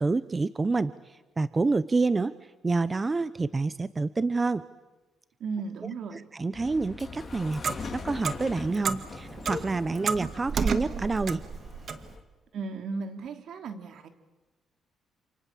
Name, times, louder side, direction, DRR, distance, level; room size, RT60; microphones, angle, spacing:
voice 1, 0.0-2.3 2.6-4.6 6.4-11.4, right 3 dB, 25° right, 15 dB, 0.8 m, -28 dB
voice 2, 5.4-6.2 12.5-14.1, right 4 dB, 70° right, 7 dB, 3.1 m, -35 dB
sound 1, 6.5-12.2, left 4 dB, 35° left, 4.3 m, -42 dB
Clock, 7.1-12.1, right 6 dB, 50° right, 2.1 m, -32 dB
28.5 x 28.0 x 7.5 m, 1.2 s
cardioid pair, 90°, 0 cm